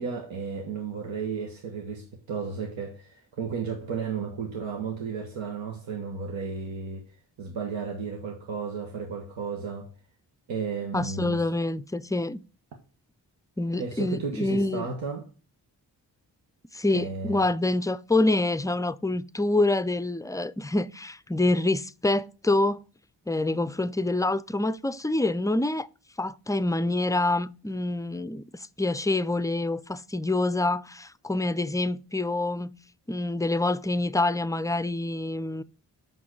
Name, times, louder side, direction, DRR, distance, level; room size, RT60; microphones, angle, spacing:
voice 1, 0.0-7.0 7.4-9.9 10.5-11.4 13.8-15.2 16.9-17.4, right 5 dB, 90° right, 1.1 m, -33 dB
voice 2, 10.9-12.4 13.6-14.9 16.7-22.8 23.3-25.9 26.2-32.7 33.1-35.6, left 2 dB, 10° left, 0.3 m, -26 dB
6.2 x 5.3 x 4.5 m
cardioid pair, 40°, 45 cm